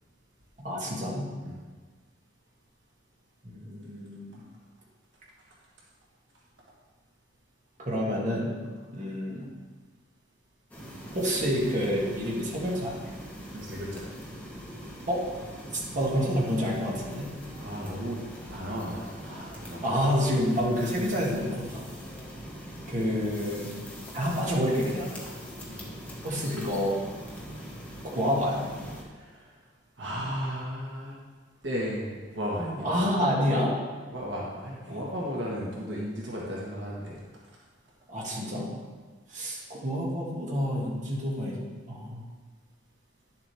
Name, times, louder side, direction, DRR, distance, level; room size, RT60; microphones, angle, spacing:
voice 1, 0.6-1.3 3.4-4.4 7.8-8.5 8.9-9.5 11.1-13.0 15.1-15.3 15.7-17.3 19.8-21.8 22.9-23.8 24.1-25.1 26.2-27.0 28.0-28.7 32.8-33.7 34.9-35.0 38.1-38.7 39.3-41.6 41.9-42.2, equal, 40° right, -5 dB, 2.0 m, -28 dB
sound 1, 10.7-29.0, equal, 10° left, 1.5 m, -42 dB
voice 2, 13.5-14.0 17.5-19.8 25.7-25.8 29.1-29.4 30.0-31.1 31.6-33.0 34.1-37.2, equal, 75° right, -4 dB, 1.4 m, -35 dB
10.5 x 7.3 x 3.4 m, 1.4 s
head